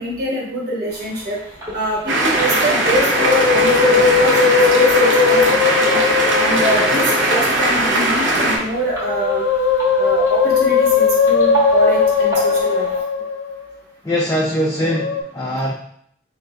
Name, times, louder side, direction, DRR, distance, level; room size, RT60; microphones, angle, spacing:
voice 1, 0.0-1.4 1.7-6.0 6.3-9.4 10.0-12.9 13.2-13.3, equal, 55° right, -4 dB, 1.3 m, -24 dB
sound 1, 0.9-13.0, right 3 dB, 15° right, 1.1 m, -34 dB
sound 2, 2.1-8.6, right 1 dB, 75° right, 0.8 m, -18 dB
Musical instrument, 2.9-7.5 8.8-13.7 14.8-15.2, left 5 dB, 75° left, 0.4 m, -18 dB
voice 2, 14.0-15.7, equal, 15° left, -3 dB, 0.4 m, -21 dB
3.9 x 2.6 x 3.3 m, 0.66 s
head